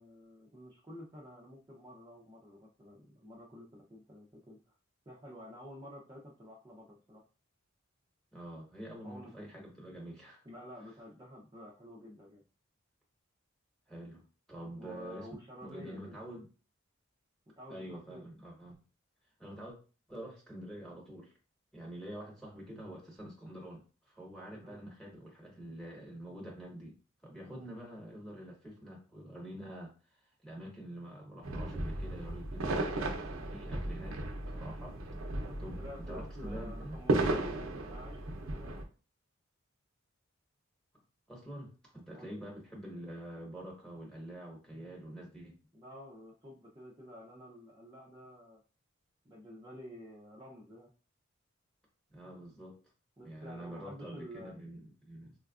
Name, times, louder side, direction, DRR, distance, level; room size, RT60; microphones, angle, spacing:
voice 1, 0.0-4.6 5.1-7.2 9.0-9.3 10.4-12.4 14.7-16.2 17.6-18.2 24.5-24.8 27.4-27.7 35.4-37.2 37.8-38.8 42.1-42.3 45.7-48.6 49.2-50.9 53.2-54.5, equal, 20° right, -4 dB, 0.5 m, -50 dB
voice 2, 8.3-10.4 13.9-15.3 15.6-16.5 17.7-18.7 19.4-19.8 20.1-21.3 21.7-26.9 27.2-29.9 30.4-32.9 33.4-34.2 34.5-35.0 35.6-36.9 41.3-45.6 52.1-52.8 53.2-55.3, right 1 dB, 5° left, -3 dB, 1.1 m, -46 dB
sound 1, 31.4-38.8, right 2 dB, 80° right, 0.6 m, -35 dB
4.3 x 2.2 x 2.4 m, 0.35 s
head